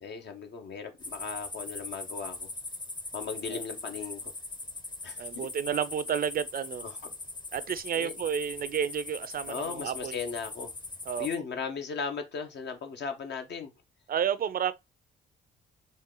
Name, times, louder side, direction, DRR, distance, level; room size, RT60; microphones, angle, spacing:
voice 1, 0.0-2.5 3.1-4.3 5.0-5.5 6.8-7.0 7.9-8.1 9.5-10.7 11.2-13.7, left 5 dB, 60° left, 1.1 m, -37 dB
sound 1, 1.0-11.4, left 3 dB, 20° left, 0.8 m, -41 dB
voice 2, 5.2-6.8 7.5-10.2 11.1-11.3 14.1-14.7, right 8 dB, 45° right, 0.5 m, -31 dB
4.3 x 3.3 x 3.8 m
cardioid pair, 90°, 20 cm